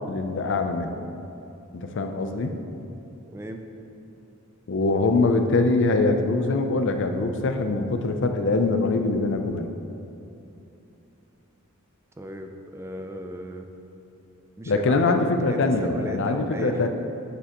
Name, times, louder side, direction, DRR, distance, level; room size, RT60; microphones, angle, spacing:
voice 1, 0.1-1.0 1.7-2.6 4.7-9.7 14.7-16.9, left 3 dB, 60° left, 6 dB, 0.5 m, -23 dB
voice 2, 3.3-3.6 12.2-13.7 14.6-15.1 15.4-16.9, right 1 dB, 10° right, 4 dB, 0.4 m, -35 dB
10.5 x 7.2 x 3.0 m, 2.8 s
head